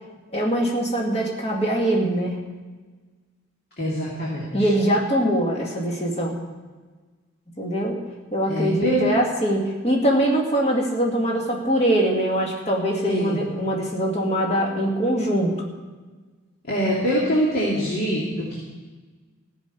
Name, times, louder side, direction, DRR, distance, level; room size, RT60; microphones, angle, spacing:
voice 1, 0.3-2.4 4.5-6.4 7.6-8.0 8.3-15.6, right 1 dB, 30° left, -1 dB, 2.2 m, -22 dB
voice 2, 3.8-4.5 8.5-9.1 13.1-13.5 16.7-18.6, equal, 45° left, -5 dB, 2.7 m, -24 dB
15.0 x 6.5 x 9.2 m, 1.3 s
head